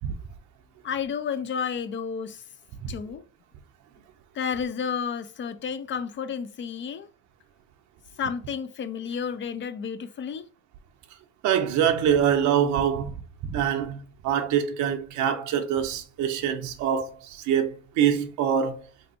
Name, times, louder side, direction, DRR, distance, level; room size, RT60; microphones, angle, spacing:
voice 1, 0.8-2.4 2.9-3.2 4.3-7.1 8.2-10.4, left 6 dB, 40° left, 0.4 m, -31 dB
voice 2, 11.4-13.1 13.5-18.8, right 9 dB, 80° right, 0.6 m, -24 dB
3.4 x 2.7 x 2.7 m
cardioid pair, 100°, 29 cm